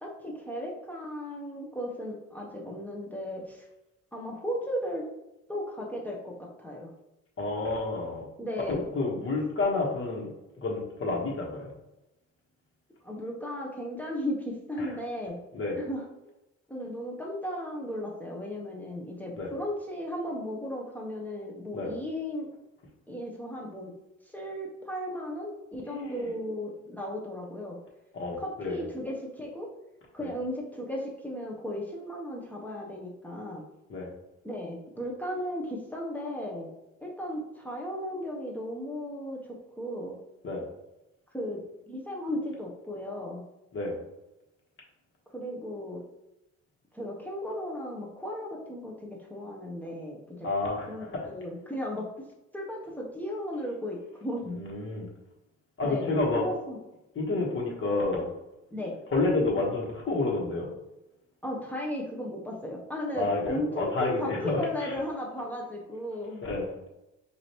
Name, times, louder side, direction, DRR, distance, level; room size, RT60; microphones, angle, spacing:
voice 1, 0.0-3.7 4.1-5.0 5.5-6.9 8.4-8.9 13.0-15.4 15.8-16.0 16.7-22.5 23.1-23.9 24.2-27.8 28.4-29.7 30.1-33.6 34.4-36.7 37.0-40.2 41.3-43.4 45.3-46.0 46.9-50.5 50.9-52.1 52.5-54.6 55.8-56.8 58.7-59.0 61.4-66.4, equal, 5° left, -2 dB, 0.8 m, -35 dB
voice 2, 7.4-8.3 8.7-10.3 10.6-11.7 14.8-14.9 15.5-15.8 19.4-19.5 21.7-21.9 25.9-26.3 28.1-28.8 30.2-30.3 33.9-34.1 40.4-40.6 43.7-44.0 50.4-51.2 54.5-55.1 55.8-56.5 57.1-58.3 59.1-60.7 63.1-64.9 66.4-66.7, left 3 dB, 45° left, -1 dB, 1.3 m, -29 dB
4.9 x 2.7 x 3.0 m, 0.93 s
cardioid pair, 90°, 30 cm